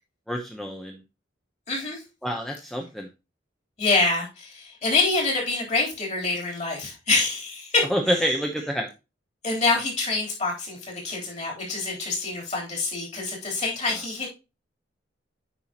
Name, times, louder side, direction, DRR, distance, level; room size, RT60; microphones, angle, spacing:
voice 1, 0.3-1.0 2.2-3.1 7.9-8.9, equal, ahead, 2 dB, 0.7 m, -27 dB
voice 2, 1.7-2.0 3.8-7.9 9.4-14.3, left 3 dB, 40° left, -1 dB, 3.4 m, -26 dB
8.9 x 5.6 x 2.9 m, 0.26 s
head